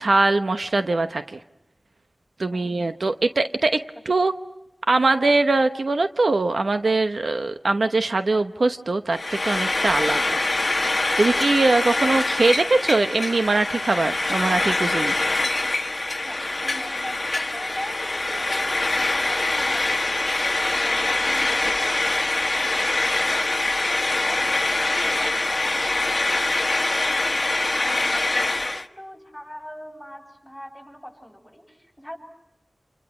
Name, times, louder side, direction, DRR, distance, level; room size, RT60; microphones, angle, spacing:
voice 1, 0.0-1.4 2.4-3.8 4.1-4.3 4.9-10.4 11.2-15.1, right 3 dB, 75° right, 8 dB, 0.9 m, -22 dB
voice 2, 2.5-2.9 15.4-15.5 16.2-32.2, equal, 5° right, 1 dB, 7.7 m, -41 dB
Frying (food), 9.1-28.9, left 2 dB, 45° left, 1.3 m, -24 dB
29.0 x 28.5 x 6.1 m, 0.94 s
wide cardioid pair, 65°, 0 cm